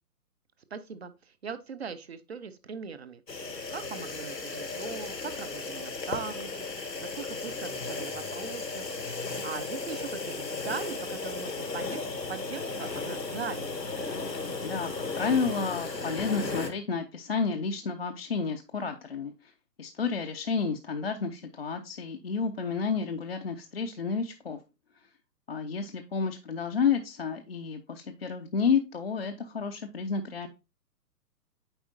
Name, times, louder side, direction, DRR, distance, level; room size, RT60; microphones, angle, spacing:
voice 1, 0.7-3.2 3.7-6.5 6.8-8.9 9.2-13.8, right 6 dB, 40° right, 0.5 m, -40 dB
sound 1, 3.3-16.7, left 3 dB, 90° left, 1.1 m, -35 dB
voice 2, 15.2-19.5 19.8-24.6 25.5-30.5, left 5 dB, 40° left, 0.4 m, -30 dB
8.8 x 4.2 x 2.7 m
figure-of-eight pair, 125°, 48 cm